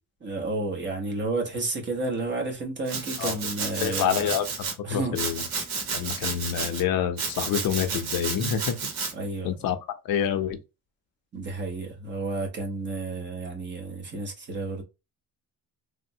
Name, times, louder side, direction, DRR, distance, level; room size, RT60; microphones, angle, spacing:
voice 1, 0.2-4.3 4.8-5.3 9.1-9.5 11.3-14.8, right 2 dB, 30° right, 0.9 m, -31 dB
Domestic sounds home sounds, 2.9-4.7 5.1-6.8 7.2-9.1, right 5 dB, 70° right, 1.2 m, -31 dB
voice 2, 3.8-4.5 4.9-5.4 5.9-8.8 9.4-9.8 10.0-10.6, left 9 dB, 65° left, 0.6 m, -27 dB
3.4 x 2.1 x 2.6 m
cardioid pair, 170°, 37 cm